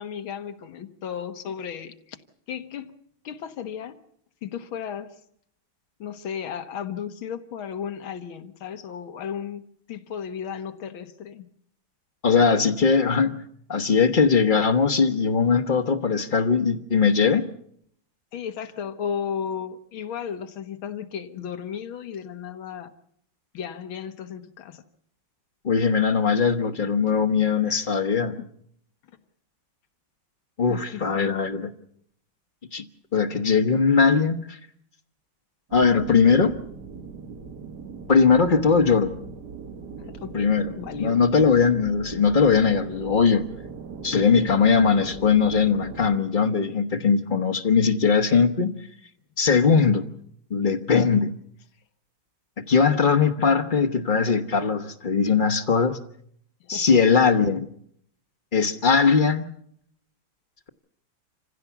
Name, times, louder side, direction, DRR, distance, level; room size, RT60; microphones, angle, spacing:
voice 1, 0.0-2.2 2.5-2.9 3.2-4.0 4.4-5.2 6.0-9.6 9.9-11.5 18.3-22.9 23.5-24.8 27.7-27.9 28.2-28.4 30.7-31.4 40.0-41.3 56.6-56.9, left 8 dB, 90° left, 9 dB, 2.1 m, -34 dB
voice 2, 12.2-13.4 13.7-17.4 25.6-28.3 30.6-31.7 32.7-32.9 33.1-34.6 35.7-36.6 38.1-39.1 40.3-40.7 41.0-43.5 44.0-48.8 49.4-50.0 50.5-51.4 52.6-56.0 56.7-57.7 58.5-59.4, left 5 dB, 35° left, 9 dB, 0.8 m, -20 dB
sound 1, 35.7-46.2, right 5 dB, 60° right, 1.8 m, -40 dB
27.0 x 16.0 x 7.1 m, 0.71 s
omnidirectional pair, 2.2 m